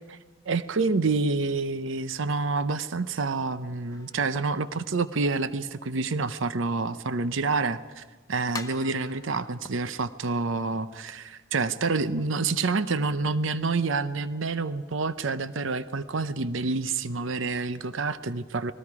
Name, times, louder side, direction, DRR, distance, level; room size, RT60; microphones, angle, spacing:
voice 1, 0.5-18.7, right 3 dB, 65° right, 13 dB, 0.7 m, -28 dB
sound 1, 3.9-5.5 6.0-6.1 6.6-6.7 7.7-7.8 8.5-10.2, left 3 dB, 15° left, 0.9 m, -44 dB
30.0 x 20.5 x 4.9 m, 1.3 s
head